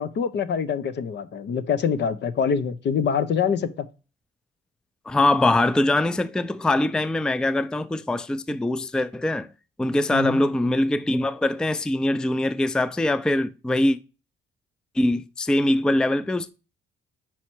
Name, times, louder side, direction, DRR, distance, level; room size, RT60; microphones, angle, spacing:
voice 1, 0.0-3.9 10.1-10.4, left 7 dB, 60° left, 0.7 m, -25 dB
voice 2, 5.1-9.5 9.8-14.0 15.0-16.5, left 1 dB, 5° left, 0.4 m, -22 dB
5.6 x 4.5 x 4.5 m
cardioid pair, 90°, 20 cm